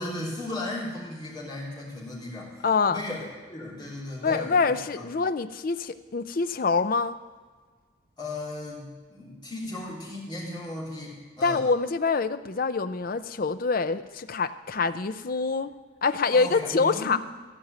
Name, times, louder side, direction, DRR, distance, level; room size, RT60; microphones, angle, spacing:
voice 1, 0.0-5.0 8.2-11.6 16.3-17.1, left 1 dB, 20° left, -7 dB, 3.4 m, -36 dB
voice 2, 2.6-3.0 4.2-7.2 11.4-15.7 16.0-17.2, left 4 dB, 45° left, 12 dB, 0.5 m, -25 dB
15.0 x 5.4 x 9.2 m, 1.4 s
head